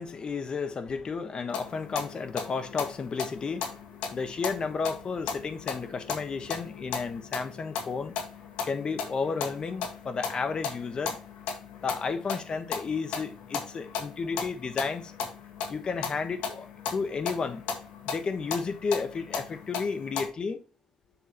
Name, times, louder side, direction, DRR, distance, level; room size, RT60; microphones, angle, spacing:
voice 1, 0.0-8.4 8.6-11.2 11.8-15.1 15.7-17.6 18.0-20.6, left 5 dB, 45° left, 1.2 m, -32 dB
sound 1, 1.5-20.3, left 6 dB, 90° left, 1.8 m, -37 dB
7.0 x 6.5 x 3.0 m
cardioid pair, 85°, 2 cm